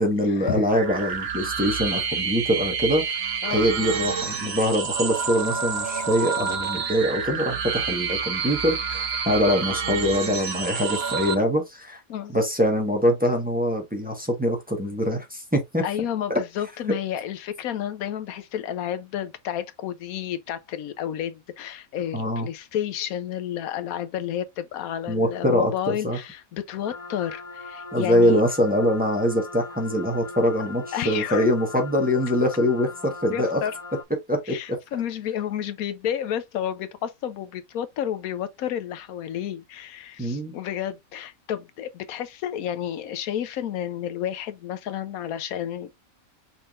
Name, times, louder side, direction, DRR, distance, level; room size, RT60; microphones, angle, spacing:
voice 1, 0.0-12.0 12.3-15.8 16.3-16.4 22.1-22.5 25.1-26.2 27.9-33.6 34.3-34.6 40.2-40.5, equal, 5° right, 1.2 m, -23 dB
sound 1, 0.7-11.3, right 6 dB, 50° right, 1.0 m, -28 dB
voice 2, 15.8-28.4 30.9-31.5 33.3-33.8 34.5-46.0, left 10 dB, 90° left, 1.2 m, -31 dB
sound 2, 26.8-34.0, left 4 dB, 30° left, 0.7 m, -39 dB
5.6 x 3.6 x 2.5 m
omnidirectional pair, 1.5 m